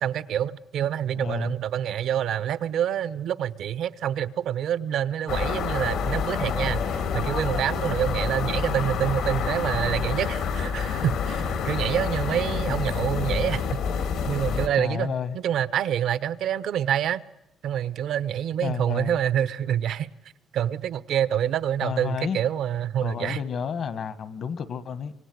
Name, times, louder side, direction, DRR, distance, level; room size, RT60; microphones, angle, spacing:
voice 1, 0.0-13.6 14.2-17.2 17.6-20.1 20.5-23.4, right 10 dB, 75° right, 0.9 m, -27 dB
voice 2, 1.1-1.5 14.8-15.4 18.6-19.2 21.8-22.4 23.0-25.1, left 6 dB, 60° left, 1.5 m, -30 dB
sound 1, 5.3-14.7, left 6 dB, 85° left, 3.1 m, -28 dB
25.0 x 25.0 x 9.5 m
cardioid pair, 90°, 0 cm